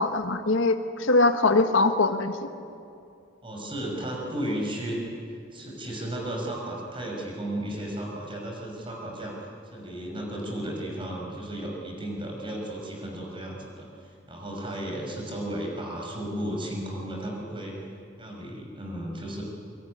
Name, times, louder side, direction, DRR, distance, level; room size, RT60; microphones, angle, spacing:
voice 1, 0.0-2.5, left 2 dB, 85° left, 7 dB, 1.6 m, -22 dB
voice 2, 3.4-5.0 5.3-17.8 18.2-19.4, right 1 dB, 25° right, 0 dB, 6.0 m, -34 dB
23.5 x 23.5 x 9.8 m, 2.4 s
head